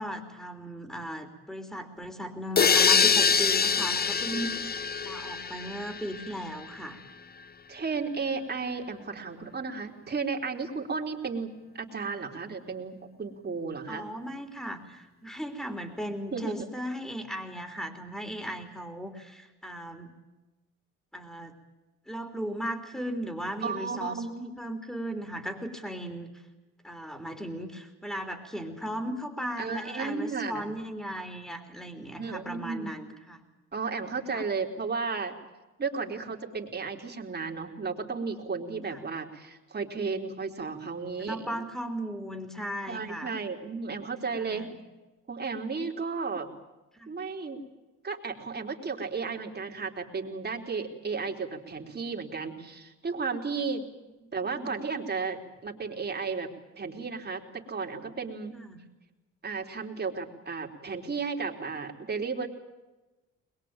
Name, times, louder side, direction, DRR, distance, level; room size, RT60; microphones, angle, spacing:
voice 1, 0.0-4.5 5.0-7.0 13.9-20.1 21.1-21.5 22.1-26.4 26.8-33.4 34.3-34.4 38.9-39.0 41.0-43.4 44.3-44.7 46.9-47.1 54.5-54.8 58.5-58.8, equal, ahead, 5 dB, 3.4 m, -37 dB
sound 1, 2.6-6.3, left 6 dB, 30° left, 1.0 m, -24 dB
voice 2, 7.7-14.0 16.3-16.7 23.6-24.5 29.6-30.6 32.2-32.9 33.7-35.3 35.8-41.6 42.9-44.7 45.3-46.5 47.1-47.7 48.0-53.8 54.3-58.6 59.4-62.5, right 4 dB, 35° right, 2 dB, 3.9 m, -34 dB
22.0 x 22.0 x 9.0 m, 1.1 s
cardioid pair, 90°, 30 cm